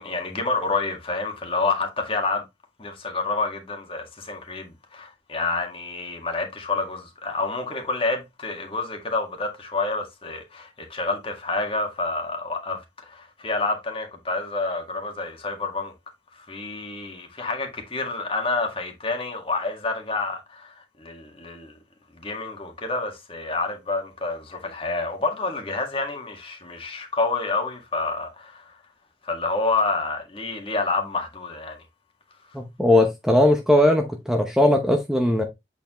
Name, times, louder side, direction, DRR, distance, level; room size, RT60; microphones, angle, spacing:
voice 1, 0.0-2.4 2.8-15.9 16.3-21.7 22.2-28.7 29.2-31.8, left 3 dB, 30° left, 1.8 m, -28 dB
voice 2, 32.5-35.4, left 1 dB, 5° right, 0.7 m, -19 dB
8.0 x 4.6 x 3.0 m
head